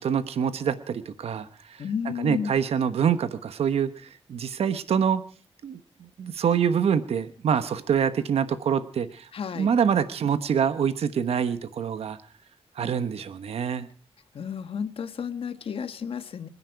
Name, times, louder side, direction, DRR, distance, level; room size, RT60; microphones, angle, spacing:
voice 1, 0.0-5.2 5.6-9.3 9.6-12.2 12.7-13.9, right 7 dB, 75° right, 11 dB, 1.1 m, -26 dB
voice 2, 1.8-2.5 9.3-9.7 14.3-16.5, left 7 dB, 60° left, 10 dB, 1.5 m, -32 dB
27.5 x 10.5 x 4.7 m, 0.40 s
wide cardioid pair, 160°, 10 cm